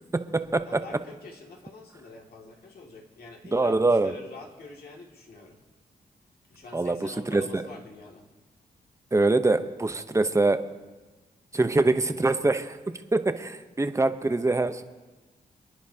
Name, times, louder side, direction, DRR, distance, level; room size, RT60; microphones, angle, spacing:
voice 1, 0.6-5.6 6.5-8.2, left 3 dB, 75° left, -1 dB, 2.3 m, -46 dB
voice 2, 3.5-4.1 6.7-7.6 9.1-10.6 11.5-12.8 13.1-14.8, right 2 dB, 20° right, 9 dB, 0.9 m, -24 dB
29.0 x 10.0 x 2.9 m, 1.2 s
cardioid pair, 70°, 16 cm